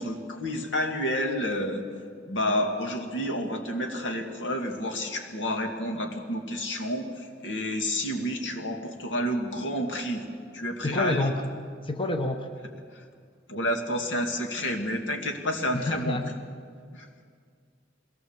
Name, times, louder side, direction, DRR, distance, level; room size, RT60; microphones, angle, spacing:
voice 1, 0.0-1.9 2.3-10.2 10.5-11.3 12.9-13.0 13.5-16.2 16.9-17.1, equal, 85° left, 3 dB, 2.2 m, -30 dB
voice 2, 10.8-11.4 11.8-12.5 15.7-16.3, left 2 dB, 30° left, 6 dB, 1.0 m, -28 dB
22.0 x 18.0 x 7.3 m, 2.1 s
head